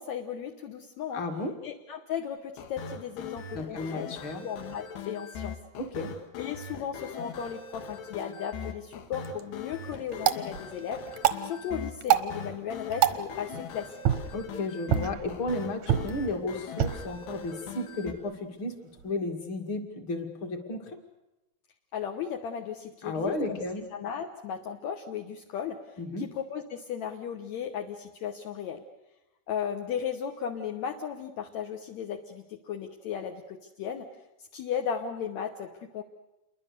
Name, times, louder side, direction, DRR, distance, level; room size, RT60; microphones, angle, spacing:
voice 1, 0.0-1.2 1.6-5.6 6.4-11.0 11.4-14.2 21.9-23.6 23.9-28.8 29.5-34.1 34.4-36.0, left 8 dB, 70° left, 4 dB, 1.7 m, -36 dB
voice 2, 1.1-1.5 3.5-4.4 5.8-6.1 14.3-18.8 19.0-21.0 23.0-23.8 26.0-26.3, left 2 dB, 40° left, 5 dB, 2.4 m, -33 dB
sound 1, 2.6-18.1, left 6 dB, 90° left, 3.8 m, -41 dB
sound 2, 9.0-19.1, right 11 dB, 70° right, 1.8 m, -31 dB
28.5 x 22.5 x 6.7 m, 0.98 s
omnidirectional pair, 4.7 m